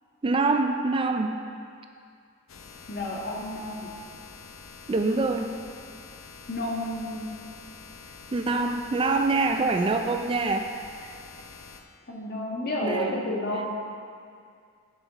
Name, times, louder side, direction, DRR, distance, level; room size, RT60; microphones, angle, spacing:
voice 1, 0.2-1.4 4.9-5.5 8.3-10.7 11.0-11.2 12.8-13.3, right 3 dB, 25° right, 5 dB, 0.4 m, -25 dB
sound 1, 2.5-11.8, left 5 dB, 75° left, 0.6 m, -46 dB
voice 2, 2.9-3.9 6.5-7.3 12.1-13.7, left 1 dB, 50° left, -2 dB, 1.5 m, -31 dB
10.5 x 6.1 x 4.1 m, 2.3 s
head